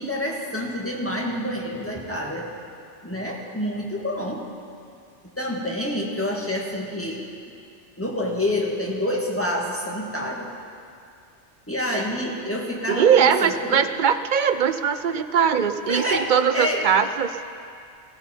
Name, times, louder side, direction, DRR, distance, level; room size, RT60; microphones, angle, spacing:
voice 1, 0.0-2.5 3.0-4.4 5.4-7.3 8.0-10.5 11.7-13.8 15.9-16.9, left 1 dB, 10° left, -2 dB, 1.8 m, -27 dB
voice 2, 12.9-17.4, right 7 dB, 50° right, 10 dB, 0.6 m, -20 dB
16.5 x 16.5 x 4.5 m, 2.4 s
omnidirectional pair, 1.2 m